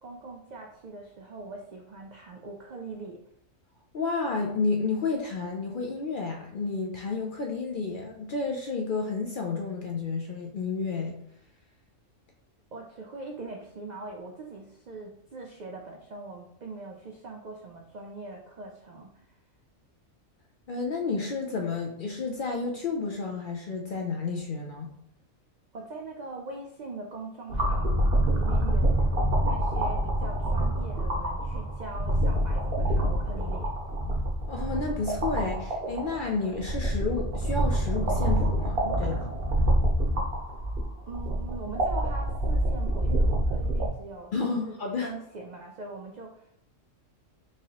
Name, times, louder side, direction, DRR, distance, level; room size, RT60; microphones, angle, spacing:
voice 1, 0.0-3.2 12.7-19.4 25.7-29.1 29.4-33.7 41.1-44.7 45.0-46.6, right 3 dB, 85° right, 1 dB, 0.3 m, -42 dB
voice 2, 3.9-11.1 20.7-24.9 34.5-39.3 44.3-45.1, left 4 dB, 60° left, 1 dB, 0.5 m, -31 dB
sound 1, 27.5-43.9, right 1 dB, 50° right, 1.0 m, -26 dB
4.6 x 2.9 x 2.9 m, 0.73 s
omnidirectional pair, 1.4 m